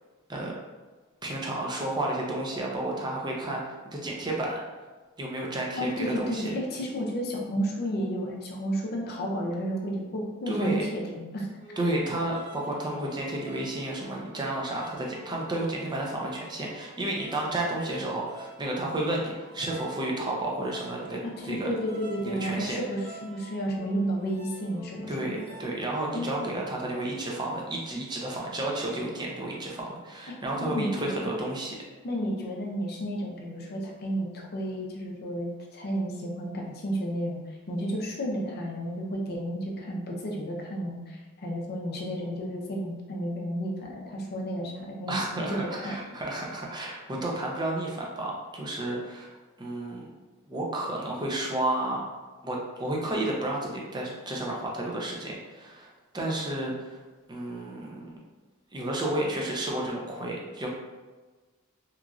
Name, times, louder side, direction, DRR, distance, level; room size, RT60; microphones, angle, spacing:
voice 1, 1.2-4.6 5.2-6.5 10.5-10.8 11.8-21.7 22.2-22.8 25.1-31.8 45.1-49.3 49.6-50.0 50.5-52.0 52.4-57.0 57.3-58.1 58.7-60.7, right 1 dB, 20° right, -2 dB, 0.5 m, -31 dB
voice 2, 5.7-11.5 21.2-25.4 26.1-26.3 30.3-31.3 32.0-37.4 37.7-46.0, equal, 45° left, -1 dB, 0.5 m, -32 dB
sound 1, 11.6-27.0, right 1 dB, 55° right, 1.3 m, -48 dB
3.0 x 2.5 x 2.4 m, 1.3 s
head